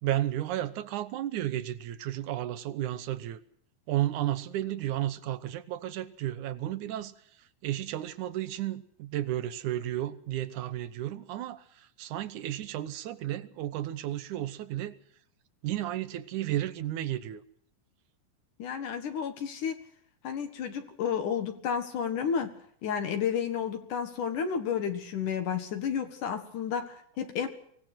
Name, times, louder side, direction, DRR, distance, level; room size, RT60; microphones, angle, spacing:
voice 1, 0.0-3.4 3.9-7.1 7.6-14.9 15.6-17.4, right 13 dB, 70° right, 13 dB, 2.2 m, -33 dB
voice 2, 18.6-19.8 20.2-22.5 22.8-27.5, left 7 dB, 65° left, 7 dB, 3.0 m, -31 dB
24.0 x 18.0 x 6.0 m, 0.66 s
omnidirectional pair, 4.1 m